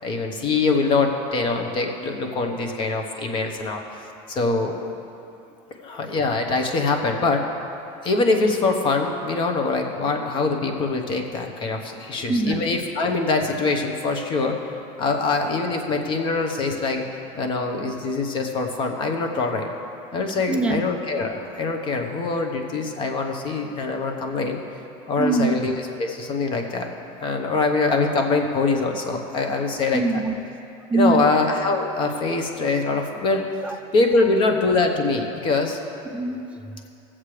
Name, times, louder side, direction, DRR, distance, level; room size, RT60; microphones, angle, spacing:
voice 1, 0.0-3.8 4.3-4.7 5.8-7.4 8.0-17.0 17.3-19.7 20.1-24.6 25.1-25.7 26.0-26.9 27.2-30.0 30.9-33.5 33.9-35.8, left 3 dB, 35° left, 3 dB, 1.1 m, -23 dB
voice 2, 12.3-12.7 17.9-18.0 20.3-20.8 25.2-25.5 29.9-30.4 30.9-31.3 33.6-33.8 34.2-34.4 36.1-36.8, right 3 dB, 10° right, 4 dB, 0.5 m, -24 dB
17.5 x 7.4 x 3.3 m, 2.7 s
cardioid pair, 155°, 15 cm